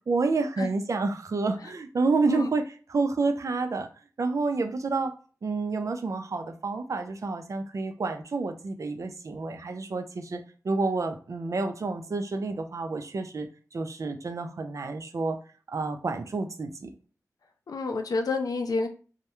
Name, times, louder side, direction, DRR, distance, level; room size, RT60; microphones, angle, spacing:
voice 1, 0.1-2.6 2.9-3.9 4.2-5.1 5.4-15.4 15.7-16.9, right 3 dB, 55° right, 6 dB, 0.4 m, -29 dB
voice 2, 17.7-18.9, left 3 dB, 75° left, 5 dB, 0.4 m, -28 dB
2.2 x 2.0 x 2.9 m, 0.37 s
wide cardioid pair, 70°, 6 cm